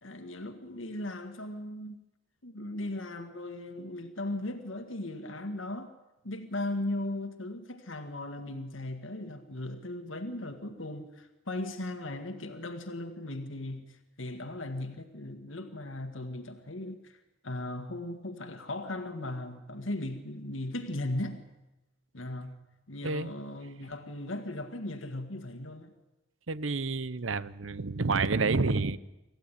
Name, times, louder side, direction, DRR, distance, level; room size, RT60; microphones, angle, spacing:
voice 1, 0.0-2.0 2.4-5.9 6.2-21.5 22.1-22.6 22.9-25.9, left 1 dB, 90° left, 1.9 m, -37 dB
voice 2, 26.5-29.0, right 3 dB, 90° right, 0.8 m, -29 dB
26.5 x 15.0 x 10.0 m
head